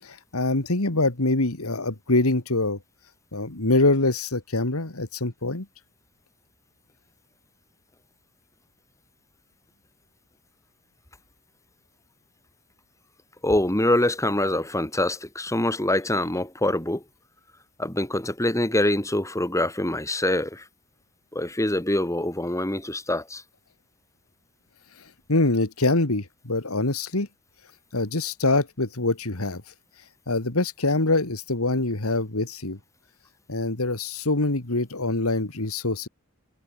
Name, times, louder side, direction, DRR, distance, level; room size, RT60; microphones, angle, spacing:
voice 1, 0.0-2.8 3.3-5.7 25.3-27.3 27.9-29.6 30.3-32.8 33.5-36.1, left 2 dB, 75° left, 2.4 m, -24 dB
voice 2, 13.4-17.0 17.8-20.6 21.3-23.4, left 1 dB, 15° left, 3.0 m, -24 dB
head